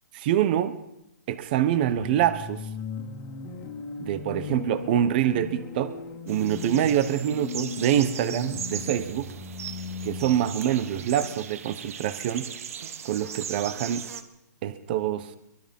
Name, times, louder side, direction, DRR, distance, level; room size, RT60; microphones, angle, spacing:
voice 1, 0.1-0.7 1.3-2.6 4.0-5.9 6.3-9.3 10.0-12.5 13.0-14.0 14.6-15.3, right 10 dB, 30° right, 13 dB, 1.1 m, -25 dB
sound 1, 2.0-11.8, left 5 dB, 20° left, 2.1 m, -38 dB
sound 2, 6.3-14.2, right 8 dB, 50° right, 1.7 m, -39 dB
23.5 x 21.0 x 5.4 m, 0.82 s
hypercardioid pair, 165°, 10 cm